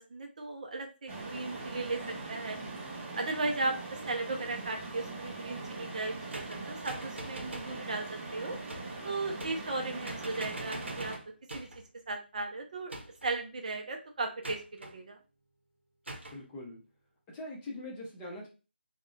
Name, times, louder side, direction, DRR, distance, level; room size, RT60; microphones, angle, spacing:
voice 1, 0.1-2.6 3.1-8.6 9.0-11.2 11.5-11.7 12.1-13.0 13.2-15.2, right 3 dB, 40° right, 4 dB, 0.4 m, -36 dB
sound 1, 1.1-11.2, right 3 dB, 20° right, 1.2 m, -41 dB
sound 2, 6.3-7.8 8.7-9.0 9.4-9.8 10.1-11.9 12.9-13.4 14.4-15.0 16.1-16.4, right 1 dB, 80° right, 0.7 m, -44 dB
voice 2, 16.3-16.8 17.3-18.5, left 1 dB, 10° left, -3 dB, 0.6 m, -42 dB
3.5 x 2.1 x 2.4 m, 0.32 s
figure-of-eight pair, 160°, 6 cm